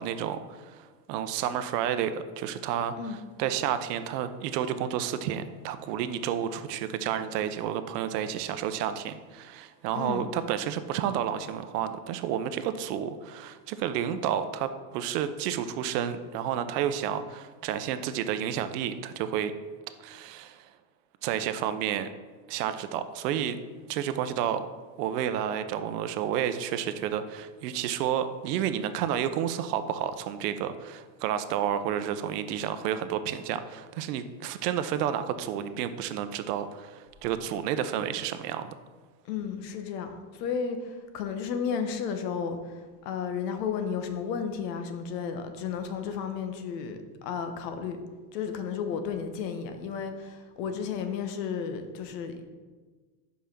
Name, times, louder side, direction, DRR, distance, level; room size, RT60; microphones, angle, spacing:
voice 1, 0.0-19.5 20.0-20.7 21.2-22.1 22.5-23.6 23.9-24.6 25.0-38.7, right 9 dB, 75° right, 10 dB, 0.8 m, -31 dB
voice 2, 39.3-48.0 48.3-52.4, left 6 dB, 80° left, 7 dB, 1.1 m, -33 dB
5.6 x 5.0 x 5.9 m, 1.4 s
supercardioid pair, 160°, 49 cm